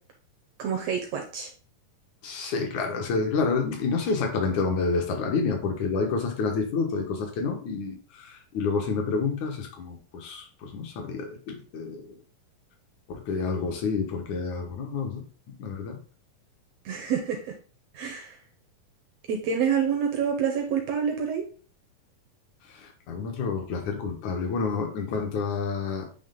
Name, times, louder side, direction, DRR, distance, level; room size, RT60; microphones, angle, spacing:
voice 1, 0.6-1.5 16.8-17.5 17.9-18.4 19.3-21.4, right 7 dB, 80° right, 4 dB, 1.5 m, -27 dB
voice 2, 2.2-12.1 13.1-16.0 22.7-26.1, left 4 dB, 65° left, 3 dB, 2.5 m, -29 dB
9.4 x 3.2 x 3.7 m, 0.39 s
omnidirectional pair, 4.0 m